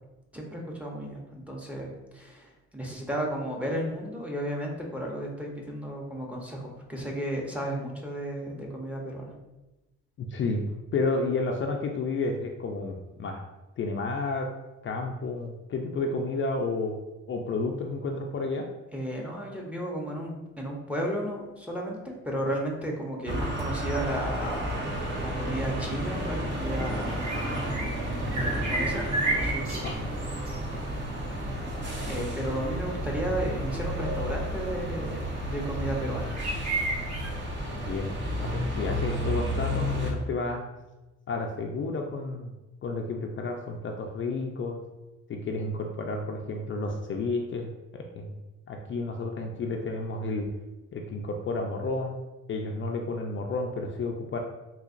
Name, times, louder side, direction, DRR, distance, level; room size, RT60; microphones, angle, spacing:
voice 1, 0.3-9.3 18.9-24.7 25.2-27.4 28.3-29.8 30.4-30.5 32.0-36.3, right 1 dB, 5° right, -1 dB, 0.7 m, -34 dB
voice 2, 10.3-10.6 10.9-13.4 13.8-14.5 14.8-16.9 17.3-18.7 29.8-30.1 37.7-38.1 38.4-40.6 41.3-42.5 42.8-44.8 45.3-48.4 48.7-50.5 50.9-52.2 52.5-54.4, left 3 dB, 40° left, 2 dB, 0.4 m, -31 dB
sound 1, 23.3-40.1, equal, 40° right, 0.8 m, -32 dB
sound 2, 26.8-37.3, right 2 dB, 65° right, 1.2 m, -35 dB
3.8 x 2.8 x 2.5 m, 1.1 s
cardioid pair, 90°, 30 cm